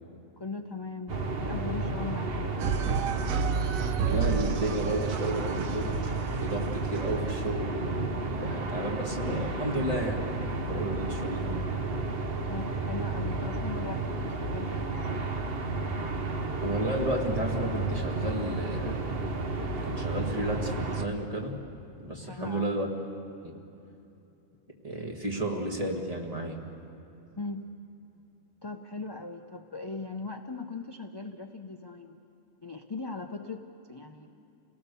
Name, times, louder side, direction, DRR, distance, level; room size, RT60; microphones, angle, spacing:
voice 1, 0.4-2.6 12.2-15.2 22.2-22.7 27.4-27.7 28.6-32.2 32.6-34.4, left 3 dB, 25° left, 5 dB, 0.6 m, -39 dB
sound 1, 1.1-21.1, right 3 dB, 50° right, 1.2 m, -32 dB
sound 2, 2.6-7.5, right 7 dB, 90° right, 1.2 m, -31 dB
voice 2, 4.0-6.1 6.4-10.2 10.5-11.6 16.6-19.0 19.8-21.6 22.0-22.9 23.4-23.5 24.8-26.6, right 1 dB, 25° right, 0 dB, 2.2 m, -32 dB
29.0 x 18.0 x 6.9 m, 2.8 s
omnidirectional pair, 1.4 m